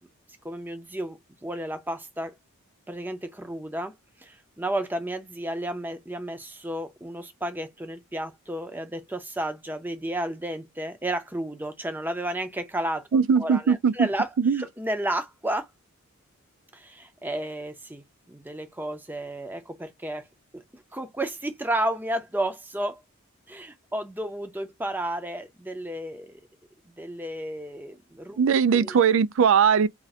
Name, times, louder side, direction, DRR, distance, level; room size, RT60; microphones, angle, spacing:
voice 1, 0.4-2.3 2.9-15.7 16.7-20.3 20.5-23.0 23.5-26.4 27.0-28.4 28.7-29.0, right 1 dB, 10° right, 0.6 m, -32 dB
voice 2, 13.1-14.1 14.4-14.6 28.4-29.9, right 6 dB, 60° right, 0.3 m, -20 dB
2.6 x 2.3 x 4.0 m
head